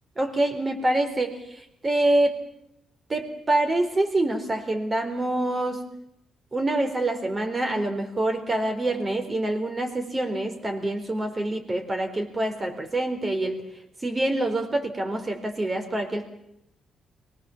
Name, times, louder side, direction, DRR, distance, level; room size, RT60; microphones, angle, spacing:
voice 1, 0.2-1.4 1.8-2.4 3.1-5.8 6.5-13.6 14.0-16.2, right 1 dB, 30° right, 5 dB, 4.3 m, -26 dB
23.0 x 19.0 x 7.4 m, 0.82 s
supercardioid pair, 60°, 0 cm